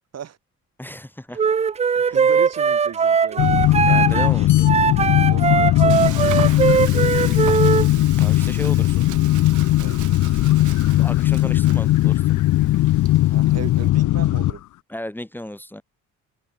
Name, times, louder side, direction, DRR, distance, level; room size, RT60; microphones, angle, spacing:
voice 1, 0.8-1.4 1.9-2.2 3.4-4.7 8.2-9.1 10.9-12.4 14.9-15.8, left 1 dB, 5° left, 2.5 m, -35 dB
Wind instrument woodwind instrument, 1.4-7.9, right 6 dB, 20° right, 0.4 m, -20 dB
voice 2, 2.1-3.6 5.3-8.2 9.8-10.0 13.3-14.6, right 9 dB, 55° right, 4.9 m, -37 dB
sound 1, 3.4-14.6, left 16 dB, 75° left, 0.8 m, -18 dB
Frying (food), 5.9-13.9, right 14 dB, 75° right, 1.5 m, -39 dB
cardioid pair, 90°, 30 cm